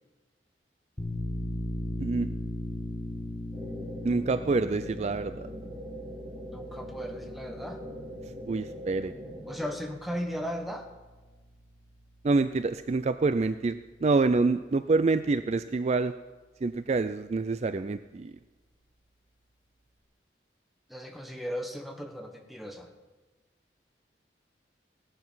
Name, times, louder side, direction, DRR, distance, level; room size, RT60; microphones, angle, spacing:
sound 1, 1.0-12.3, left 1 dB, 25° left, 2.0 m, -39 dB
sound 2, 3.5-9.8, equal, 20° right, 2.0 m, -42 dB
voice 1, 4.0-5.5 8.5-9.1 12.2-16.1 16.6-18.3, right 3 dB, 40° right, 12 dB, 0.4 m, -27 dB
voice 2, 6.5-7.8 9.5-10.9 20.9-22.9, equal, ahead, 3 dB, 1.4 m, -36 dB
17.0 x 12.0 x 5.6 m, 1.3 s
head